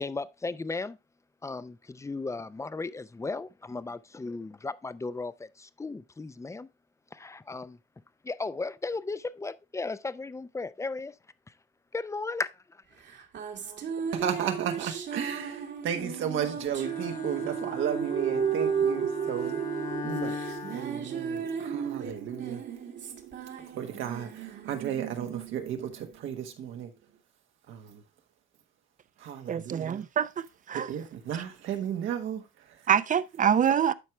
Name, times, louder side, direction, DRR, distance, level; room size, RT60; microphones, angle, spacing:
voice 1, 0.4-0.9 2.1-2.4 2.8-2.9 3.2-3.4 5.0-5.3 8.4-9.2 9.4-9.5 9.8-9.9 10.6-10.9 12.1-12.4, left 3 dB, 15° left, 0.5 m, -32 dB
sound 1, 13.0-26.7, right 7 dB, 65° right, 1.7 m, -34 dB
voice 2, 14.1-22.6 23.6-26.9 27.7-28.0 29.2-30.0 30.7-32.9, right 9 dB, 85° right, 1.5 m, -34 dB
Bowed string instrument, 16.7-21.7, left 4 dB, 40° left, 1.0 m, -40 dB
voice 3, 29.5-30.9 32.9-33.9, right 8 dB, 40° right, 0.5 m, -25 dB
11.5 x 4.7 x 3.2 m
cardioid pair, 90°, 20 cm